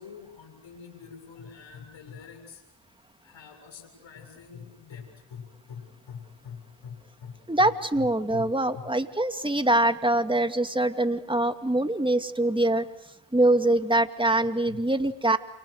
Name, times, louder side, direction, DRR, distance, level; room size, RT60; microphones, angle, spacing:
voice 1, 0.0-2.6 3.2-8.9 14.7-14.8, left 6 dB, 70° left, 5 dB, 7.3 m, -44 dB
voice 2, 7.5-12.8 13.3-15.4, right 1 dB, 10° right, 8 dB, 2.5 m, -24 dB
29.0 x 27.5 x 6.6 m, 0.85 s
supercardioid pair, 55°, 47 cm